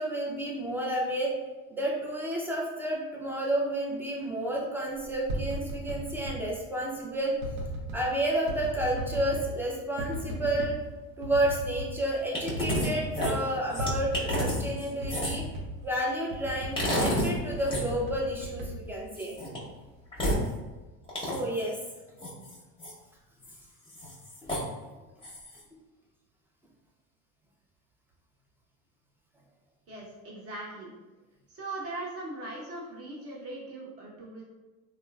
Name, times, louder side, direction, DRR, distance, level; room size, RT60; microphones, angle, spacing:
voice 1, 0.0-1.3 1.7-7.3 7.9-10.8 11.2-15.4 15.8-19.3 21.2-21.8, right 1 dB, 5° right, -3 dB, 0.4 m, -30 dB
sound 1, 5.0-6.4 7.4-8.0 8.5-9.5 10.0-10.8 11.2-11.9 12.2-12.3 12.5-13.4 13.8-14.7 15.0-15.8 16.3-19.4 19.8-20.2, equal, 90° right, 0.7 m, -36 dB
sound 2, 12.3-12.9 13.1-15.5 16.8-17.3 17.6-17.8 19.2-19.6 20.1-20.4 21.1-21.6 22.2-22.9 23.4-23.6 23.9-24.7 25.2-25.6, equal, 10° left, 0.9 m, -30 dB
voice 2, 29.9-30.9 31.5-34.4, right 2 dB, 30° right, -4 dB, 1.0 m, -40 dB
2.9 x 2.1 x 2.3 m, 1.2 s
hypercardioid pair, 80°, 48 cm